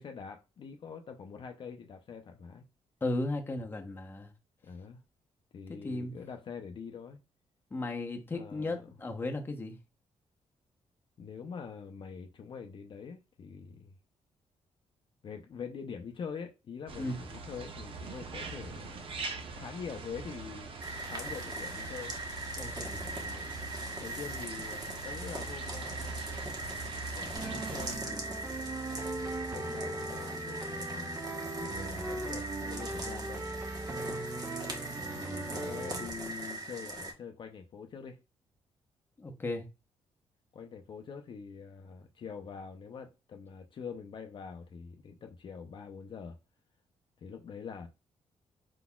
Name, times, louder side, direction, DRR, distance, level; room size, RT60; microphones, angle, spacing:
voice 1, 0.0-2.7 4.6-5.0 5.5-7.2 8.3-8.9 11.2-13.9 15.2-19.1 19.6-20.7 21.1-22.1 22.9-23.5 24.0-26.3 27.1-28.7 29.5-31.2 31.6-33.5 35.1-38.2 40.5-46.4 47.2-47.9, left 6 dB, 45° left, 0.6 m, -44 dB
voice 2, 3.0-4.3 5.8-6.1 7.7-9.8 17.0-17.2 22.6-23.0 39.2-39.6, left 2 dB, 20° left, 0.8 m, -35 dB
sound 1, 16.9-28.0, right 3 dB, 55° right, 0.7 m, -43 dB
sound 2, 20.8-37.1, right 2 dB, 35° right, 1.1 m, -40 dB
sound 3, 27.3-36.1, right 2 dB, 20° right, 0.7 m, -39 dB
4.7 x 4.0 x 2.3 m
cardioid pair, 120°, 11 cm